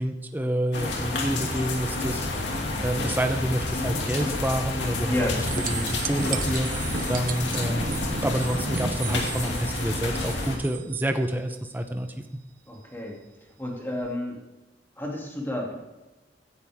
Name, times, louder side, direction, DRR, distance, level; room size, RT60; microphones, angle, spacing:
voice 1, 0.0-2.5 2.8-5.1 5.7-8.0 8.2-12.1, right 1 dB, 10° right, 6 dB, 0.8 m, -28 dB
sound 1, 0.7-10.6, left 2 dB, 85° left, 2.6 m, -29 dB
voice 2, 5.1-5.4 12.7-13.2 13.6-14.4 15.0-15.7, left 1 dB, 10° left, -1 dB, 2.7 m, -30 dB
sound 2, 5.4-11.1 14.0-14.1, right 5 dB, 50° right, 0.8 m, -35 dB
16.5 x 10.5 x 3.6 m, 1.1 s
head